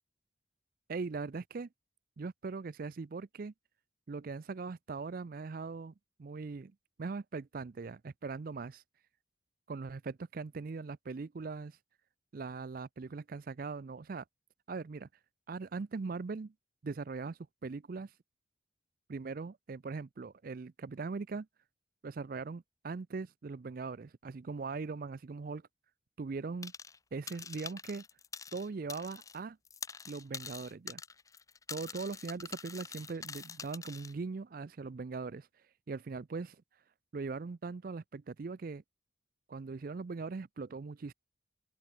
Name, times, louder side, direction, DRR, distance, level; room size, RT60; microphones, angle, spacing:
voice 1, 0.9-1.7 2.2-3.5 4.1-5.9 6.2-6.7 7.0-8.8 9.7-11.8 12.3-14.2 14.7-15.1 15.5-16.5 16.8-18.1 19.1-21.5 22.0-25.6 26.2-26.7 27.1-28.0 28.5-29.6 30.1-31.0 31.7-35.5 35.9-36.6 37.1-38.8 39.5-41.1, right 4 dB, 45° right, 0.4 m, -40 dB
sound 1, 26.6-27.0 27.3-29.4 29.6-34.1, left 5 dB, 15° left, 0.7 m, -45 dB
open air
head